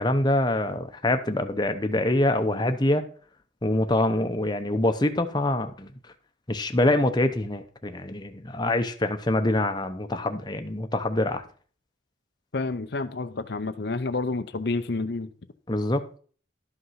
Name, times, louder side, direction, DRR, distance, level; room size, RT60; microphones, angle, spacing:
voice 1, 0.0-3.0 3.6-5.9 6.5-11.4 15.7-16.2, left 1 dB, 20° left, 0.8 m, -25 dB
voice 2, 12.5-15.3, left 3 dB, 60° left, 0.7 m, -29 dB
12.0 x 5.6 x 5.7 m
head